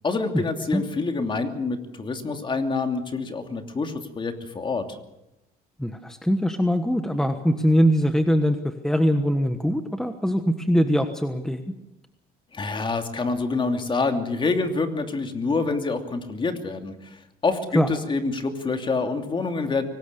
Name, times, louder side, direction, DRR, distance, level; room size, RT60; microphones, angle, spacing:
voice 1, 0.0-5.0 12.5-19.9, left 3 dB, 30° left, 6 dB, 2.8 m, -27 dB
voice 2, 5.8-11.6 17.7-17.9, equal, 5° left, 7 dB, 1.3 m, -22 dB
23.5 x 19.5 x 6.9 m, 0.91 s
cardioid pair, 110°, 17 cm